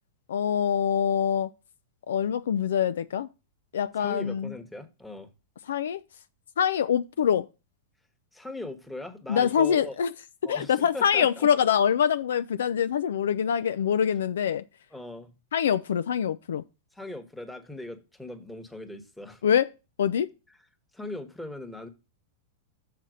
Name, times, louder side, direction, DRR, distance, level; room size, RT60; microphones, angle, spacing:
voice 1, 0.3-1.5 2.1-3.3 3.7-4.5 5.7-6.0 6.6-7.5 9.3-10.1 10.5-14.6 15.5-16.6 19.4-19.7 20.0-20.3, left 8 dB, 85° left, 0.3 m, -24 dB
voice 2, 4.0-5.3 8.3-10.0 10.4-11.5 14.9-15.4 16.9-19.4 20.5-20.6 20.9-21.9, left 2 dB, 5° left, 1.2 m, -39 dB
6.7 x 4.2 x 6.1 m
hypercardioid pair, 115°, 0 cm